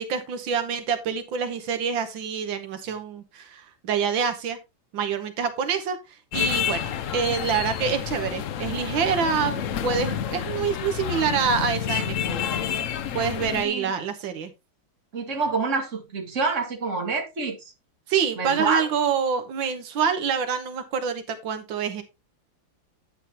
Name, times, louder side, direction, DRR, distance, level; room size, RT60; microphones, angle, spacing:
voice 1, 0.0-4.6 4.9-6.0 6.3-12.4 13.1-14.5 18.1-22.0, right 6 dB, 80° right, 1.8 m, -26 dB
sound 1, 6.3-13.6, left 8 dB, 65° left, 0.7 m, -29 dB
voice 2, 15.1-17.7 18.4-18.9, right 4 dB, 40° right, 2.2 m, -27 dB
9.4 x 9.0 x 2.9 m
omnidirectional pair, 2.1 m